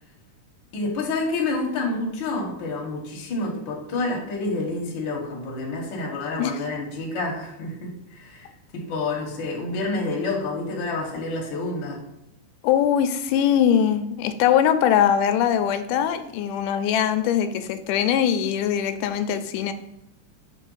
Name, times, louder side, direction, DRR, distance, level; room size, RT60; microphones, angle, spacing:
voice 1, 0.7-12.0, left 2 dB, 55° left, 0 dB, 1.4 m, -28 dB
voice 2, 12.6-19.7, left 9 dB, 85° left, 10 dB, 2.1 m, -21 dB
5.9 x 3.3 x 5.4 m, 0.84 s
omnidirectional pair, 3.7 m